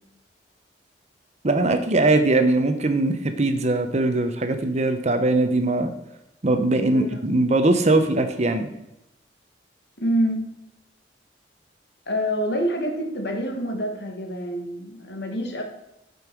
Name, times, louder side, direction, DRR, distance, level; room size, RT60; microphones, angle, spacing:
voice 1, 1.4-5.9 6.4-8.7, right 2 dB, 40° right, 8 dB, 0.8 m, -21 dB
voice 2, 6.7-7.2 10.0-10.4 12.1-15.6, equal, 65° left, 2 dB, 1.7 m, -26 dB
9.7 x 5.4 x 4.6 m, 0.88 s
head